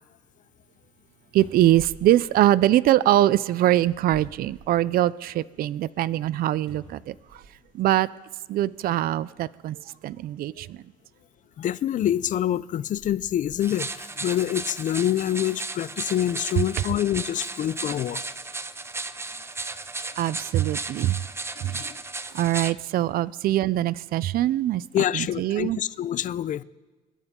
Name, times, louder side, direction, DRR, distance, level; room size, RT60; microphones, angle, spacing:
voice 1, 1.3-7.1 7.7-8.1 8.5-9.8 10.0-10.8 20.2-21.2 21.6-21.9 22.3-24.8 25.1-25.8, right 13 dB, 60° right, 0.4 m, -23 dB
sound 1, 1.4-3.1 3.8-5.2 5.6-5.7 6.7-7.8 8.7-8.8 12.0-13.7 14.3-14.5, right 2 dB, 35° right, 4.3 m, -48 dB
voice 2, 11.6-18.2 21.6-22.0 24.9-26.6, left 11 dB, 50° left, 0.5 m, -26 dB
sound 2, 13.6-22.7, right 3 dB, 15° right, 0.6 m, -35 dB
27.5 x 12.0 x 3.7 m
cardioid pair, 110°, 17 cm